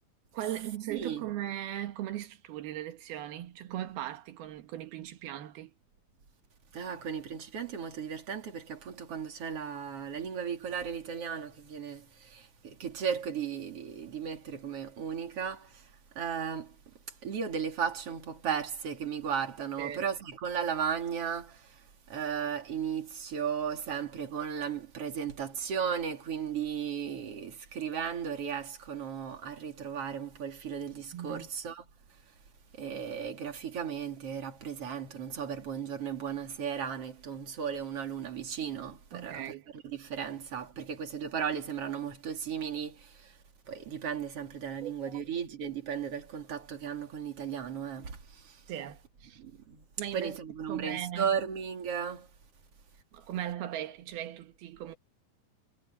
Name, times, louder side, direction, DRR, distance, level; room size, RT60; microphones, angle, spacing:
voice 1, 0.3-5.7 19.8-20.0 31.1-31.5 39.1-39.7 44.8-44.9 48.7-49.4 50.0-50.4 50.7-51.4 53.1-55.0, right 12 dB, 85° right, 3.5 m, -38 dB
voice 2, 0.9-1.2 6.7-15.9 16.2-16.8 17.2-21.8 22.1-31.8 32.8-39.4 39.9-43.3 43.7-48.6 49.4-49.9 50.1-52.3, right 7 dB, 40° right, 3.7 m, -35 dB
omnidirectional pair, 4.3 m